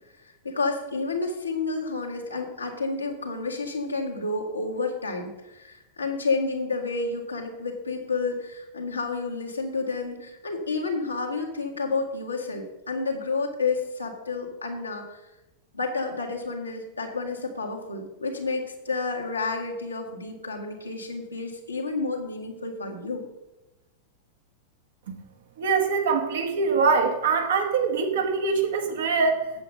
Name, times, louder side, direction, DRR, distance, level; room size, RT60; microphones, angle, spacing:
voice 1, 0.2-15.2 15.7-23.2, left 3 dB, 80° left, -1 dB, 1.8 m, -30 dB
voice 2, 25.6-29.4, right 5 dB, 60° right, 4 dB, 1.4 m, -23 dB
8.0 x 7.9 x 5.3 m, 0.96 s
figure-of-eight pair, 90°, 0 cm